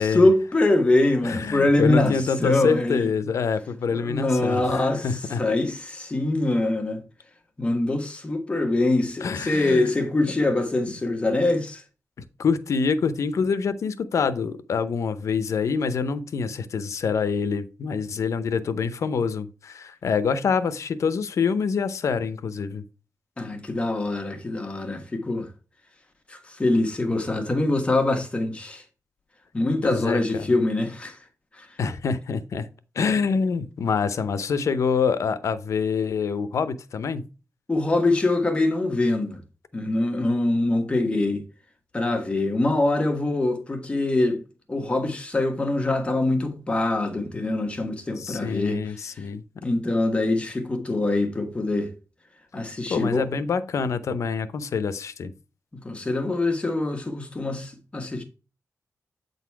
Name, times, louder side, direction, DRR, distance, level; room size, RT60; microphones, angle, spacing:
voice 1, 0.0-3.1 3.9-5.1 5.4-7.0 7.6-11.8 23.4-25.5 26.3-28.8 29.5-31.2 31.6-31.7 37.7-39.4 39.7-41.4 41.9-44.4 44.7-48.8 49.6-51.9 52.5-53.3 55.8-58.2, left 2 dB, 20° left, 1.4 m, -24 dB
voice 2, 1.2-5.4 9.2-9.9 12.4-22.8 29.8-30.5 31.8-32.7 33.0-37.3 48.2-49.7 52.9-55.3, left 5 dB, 70° left, 0.7 m, -26 dB
8.2 x 4.1 x 4.6 m
wide cardioid pair, 150°, 6 cm